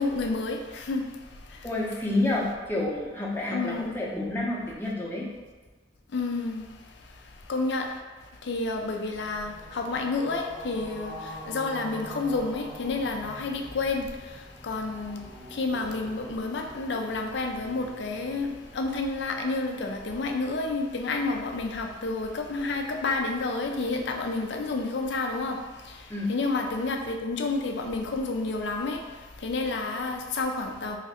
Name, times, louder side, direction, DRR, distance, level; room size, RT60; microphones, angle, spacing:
voice 1, 0.0-1.7 3.5-4.0 6.1-31.0, left 3 dB, 65° left, 3 dB, 0.5 m, -30 dB
voice 2, 1.6-5.3 26.1-26.3, left 2 dB, 10° left, -5 dB, 0.7 m, -29 dB
sound 1, 9.1-24.7, equal, 25° right, 0.7 m, -46 dB
3.2 x 2.5 x 4.0 m, 1.2 s
head